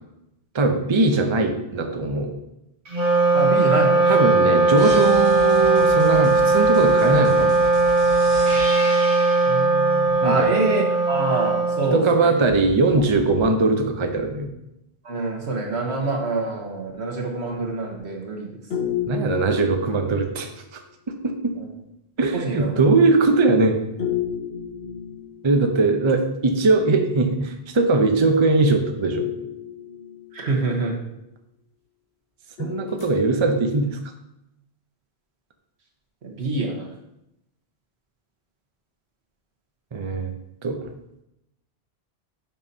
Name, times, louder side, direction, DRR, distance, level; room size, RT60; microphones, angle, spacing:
voice 1, 0.5-2.3 4.1-7.5 10.2-10.5 11.9-14.5 19.1-20.5 21.2-21.5 22.2-23.8 25.4-29.3 32.6-34.0 39.9-40.3 40.6-40.8, right 3 dB, 30° right, 5 dB, 0.6 m, -20 dB
Wind instrument woodwind instrument, 2.9-12.5, right 2 dB, 60° right, 1.4 m, -19 dB
voice 2, 3.3-4.0 9.4-12.3 15.0-18.5 19.1-19.4 21.6-21.7 22.3-22.8 30.3-30.9 36.2-36.9, right 3 dB, 85° right, 1 dB, 1.5 m, -26 dB
sound 1, 4.8-9.6 12.4-13.4, equal, 5° right, 1.9 m, -36 dB
sound 2, 18.7-20.4 24.0-25.8 29.1-30.7 32.6-33.8, left 9 dB, 80° left, 1.3 m, -31 dB
9.2 x 5.6 x 2.7 m, 0.86 s
omnidirectional pair, 1.1 m